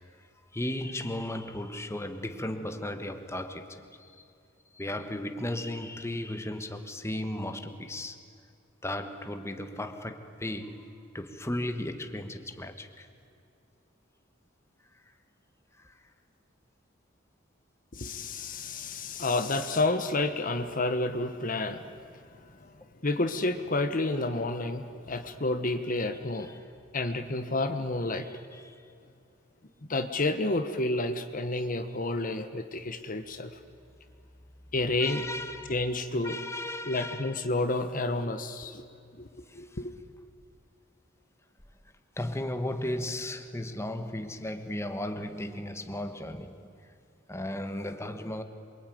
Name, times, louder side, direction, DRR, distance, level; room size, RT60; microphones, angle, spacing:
voice 1, 0.5-3.9 4.7-8.2 8.8-13.1 15.8-15.9 26.4-26.7 28.1-28.8 35.0-35.7 36.2-37.4 39.5-39.8 42.2-46.7 47.3-48.4, left 1 dB, 15° left, 1.4 m, -35 dB
voice 2, 17.9-21.9 23.0-26.5 26.9-28.3 29.9-33.5 34.7-35.2 35.7-36.4 36.8-38.8 39.2-39.3 39.6-39.9, left 2 dB, 45° left, 1.2 m, -30 dB
27.5 x 23.0 x 9.3 m
head